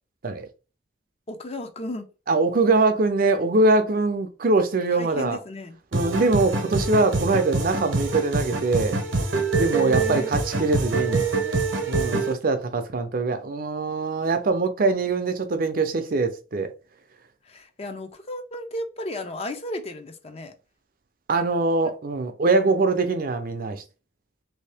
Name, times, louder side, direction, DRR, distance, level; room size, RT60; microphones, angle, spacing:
voice 1, 1.3-2.1 4.9-5.8 9.8-10.3 17.4-20.5, left 1 dB, 30° left, 0.5 m, -34 dB
voice 2, 2.3-5.4 5.9-9.0 9.6-11.3 11.9-16.7 21.3-23.8, right 3 dB, 50° right, 0.5 m, -23 dB
sound 1, 5.9-12.3, right 3 dB, 75° right, 0.8 m, -25 dB
3.1 x 2.7 x 3.3 m
head